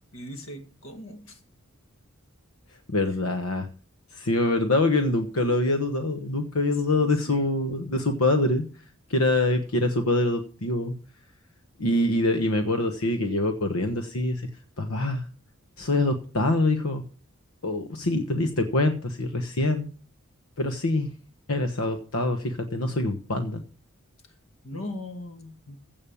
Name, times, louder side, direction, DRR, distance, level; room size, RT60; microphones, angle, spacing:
voice 1, 0.1-1.4 7.0-7.4 24.6-25.8, left 1 dB, 65° left, 1.9 m, -39 dB
voice 2, 2.9-3.7 4.1-8.6 9.1-10.9 11.8-14.5 14.8-15.2 15.8-17.0 17.6-19.9 20.6-21.1 21.5-23.6, left 2 dB, 85° left, 1.2 m, -25 dB
15.5 x 5.4 x 7.1 m
head